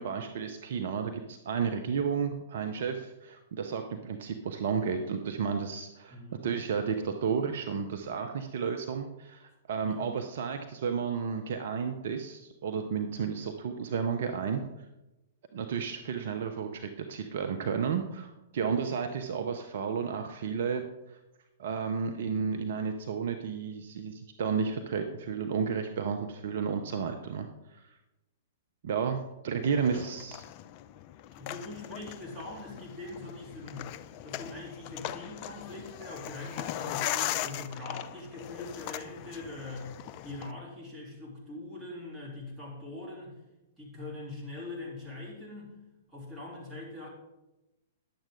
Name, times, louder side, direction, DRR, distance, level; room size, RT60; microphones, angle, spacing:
voice 1, 0.0-6.2 6.4-14.6 15.5-21.2 21.6-27.8 28.8-30.4, right 6 dB, 60° right, 6 dB, 0.7 m, -32 dB
voice 2, 6.1-6.6 9.8-10.1 29.8-30.1 31.3-33.9 34.2-39.9 40.2-43.4 43.8-45.8 46.1-47.1, left 2 dB, 15° right, -4 dB, 3.4 m, -42 dB
sound 1, 29.6-40.5, left 13 dB, 40° left, 0.4 m, -39 dB
10.5 x 7.5 x 3.8 m, 0.98 s
figure-of-eight pair, 110°, 0 cm